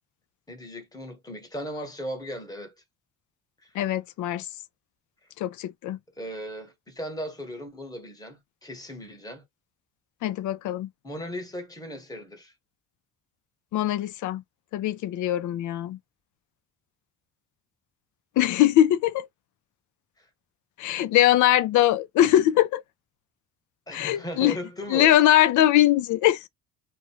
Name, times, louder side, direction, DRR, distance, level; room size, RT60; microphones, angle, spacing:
voice 1, 0.5-2.7 3.6-3.7 6.2-9.4 11.0-12.5 20.2-20.3 23.9-25.2, equal, 10° left, 1.2 m, -37 dB
voice 2, 3.7-4.5 5.4-6.0 10.2-10.9 13.7-14.4 14.7-16.0 18.4-19.3 20.8-22.8 23.9-24.6 24.9-26.5, left 13 dB, 70° left, 0.5 m, -21 dB
2.5 x 2.2 x 3.0 m
cardioid pair, 105°, 31 cm